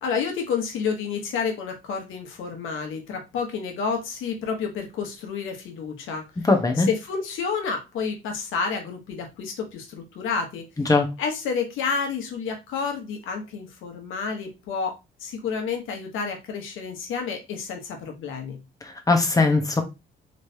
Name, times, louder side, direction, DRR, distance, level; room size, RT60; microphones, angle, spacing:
voice 1, 0.0-6.5 6.8-10.6 11.2-18.6, left 5 dB, 85° left, 1.1 m, -30 dB
voice 2, 6.4-6.9 10.8-11.1 18.8-19.8, left 3 dB, 20° left, 0.9 m, -20 dB
3.2 x 3.2 x 2.8 m
cardioid pair, 90°, 20 cm